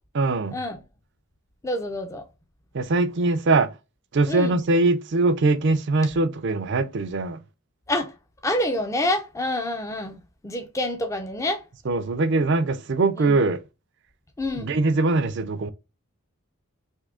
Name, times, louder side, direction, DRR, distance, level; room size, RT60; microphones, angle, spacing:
voice 1, 0.1-0.6 2.7-3.7 4.1-7.4 11.8-13.6 14.6-15.7, right 3 dB, 50° right, 0.4 m, -22 dB
voice 2, 1.6-2.2 4.3-4.5 7.9-8.1 8.4-11.6 13.2-13.4 14.4-14.7, left 1 dB, 15° left, 0.4 m, -27 dB
3.6 x 2.7 x 3.5 m
head